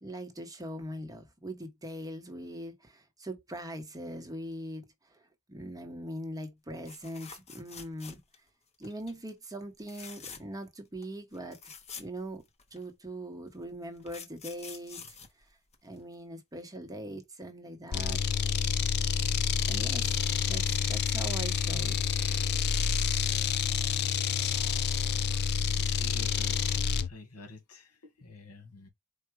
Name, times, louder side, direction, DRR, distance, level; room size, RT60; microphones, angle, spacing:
voice 1, 0.0-5.2 5.5-8.2 8.8-11.6 12.0-12.4 12.7-15.0 15.8-18.2 19.7-20.1 20.4-22.1, right 1 dB, 15° right, 1.0 m, -41 dB
sound 1, 6.8-8.5 8.8-9.2 9.8-10.7 11.0-11.1 11.3-12.8 13.6-16.1 18.1-18.2 18.5-18.6, left 6 dB, 30° left, 0.8 m, -47 dB
sound 2, 17.9-27.1, left 7 dB, 50° left, 0.4 m, -28 dB
voice 2, 25.8-28.9, left 2 dB, 85° left, 1.7 m, -50 dB
4.7 x 2.3 x 4.6 m
head